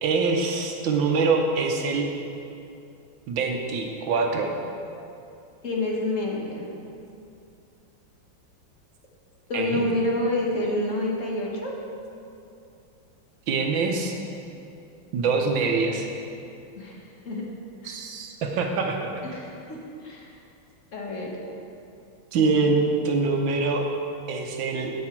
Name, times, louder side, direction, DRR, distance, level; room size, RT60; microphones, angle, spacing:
voice 1, 0.0-2.0 3.3-4.5 9.5-9.8 13.5-14.1 15.1-16.1 17.8-19.2 22.3-23.9 24.3-24.9, right 4 dB, 70° right, 2 dB, 1.5 m, -24 dB
voice 2, 5.6-6.7 9.5-11.7 16.7-17.0 17.2-17.4 17.8-18.0 19.3-19.8 20.0-20.3 20.9-21.4, left 1 dB, 45° left, -2 dB, 1.4 m, -28 dB
9.8 x 8.1 x 4.4 m, 2.7 s
omnidirectional pair, 2.2 m